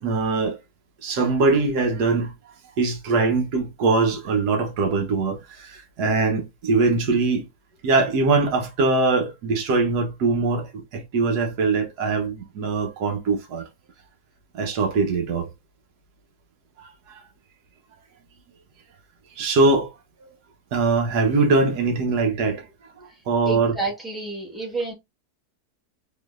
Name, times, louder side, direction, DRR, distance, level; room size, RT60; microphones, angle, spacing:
voice 1, 0.0-0.6 1.0-2.3 2.8-7.5 7.8-13.7 14.5-15.5 17.1-17.2 19.4-19.9 20.2-20.3 20.7-22.6 23.3-23.7, right 3 dB, 90° right, 1.5 m, -22 dB
voice 2, 23.4-24.9, right 3 dB, ahead, 1.2 m, -29 dB
3.8 x 3.2 x 2.4 m
omnidirectional pair, 1.6 m